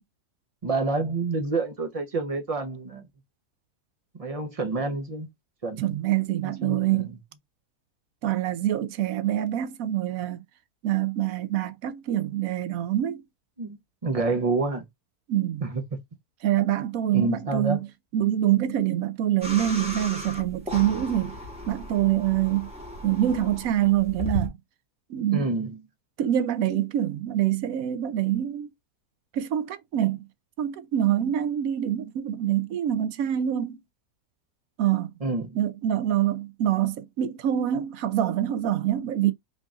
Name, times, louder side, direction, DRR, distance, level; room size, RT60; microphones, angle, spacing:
voice 1, 0.6-3.1 4.2-5.3 5.6-5.9 6.6-7.0 13.6-14.9 15.6-16.0 17.1-17.8 25.3-25.8 35.2-35.6, right 3 dB, 40° right, 0.5 m, -28 dB
voice 2, 5.8-7.1 8.2-10.4 10.8-13.2 15.3-15.7 16.4-17.8 18.1-21.4 21.7-22.7 23.0-24.5 25.1-25.5 26.2-28.7 29.3-30.2 30.6-33.8 34.8-35.1 35.5-39.3, right 12 dB, 70° right, 0.9 m, -25 dB
sound 1, 19.4-24.5, left 1 dB, 5° right, 1.1 m, -36 dB
3.7 x 2.6 x 3.4 m
omnidirectional pair, 1.6 m